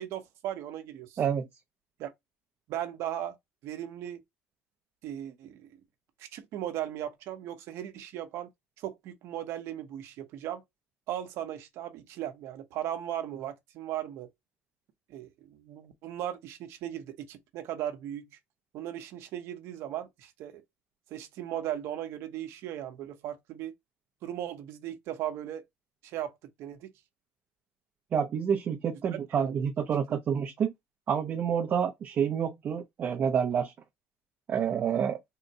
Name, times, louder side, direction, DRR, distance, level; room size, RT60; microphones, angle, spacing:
voice 1, 0.0-1.2 2.0-2.1 2.7-3.4 3.6-4.2 5.0-5.8 6.2-8.5 8.8-10.6 11.1-14.3 15.1-18.3 18.7-20.6 21.1-23.7 24.2-25.6 26.0-26.3 26.6-26.9 29.4-29.6, right 11 dB, 65° right, 0.8 m, -37 dB
voice 2, 1.2-1.5 28.1-30.7 31.1-33.7 34.5-35.2, right 7 dB, 40° right, 0.5 m, -28 dB
3.7 x 2.1 x 2.6 m
cardioid pair, 125°, 5 cm